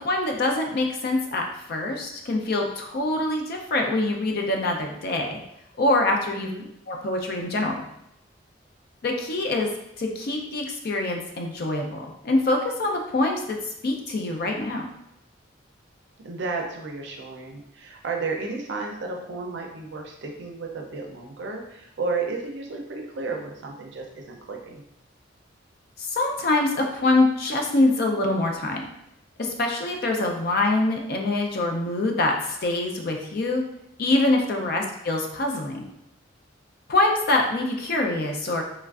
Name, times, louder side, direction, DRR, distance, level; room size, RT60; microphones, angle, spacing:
voice 1, 0.0-5.4 5.8-6.5 6.9-7.8 9.0-9.7 10.0-14.9 26.0-28.9 29.4-33.6 34.0-35.8 36.9-38.6, left 2 dB, 50° left, 2 dB, 0.4 m, -24 dB
voice 2, 6.3-6.7 16.2-24.8 34.6-34.9, right 3 dB, 60° right, 1 dB, 0.5 m, -33 dB
3.1 x 2.4 x 2.3 m, 0.79 s
head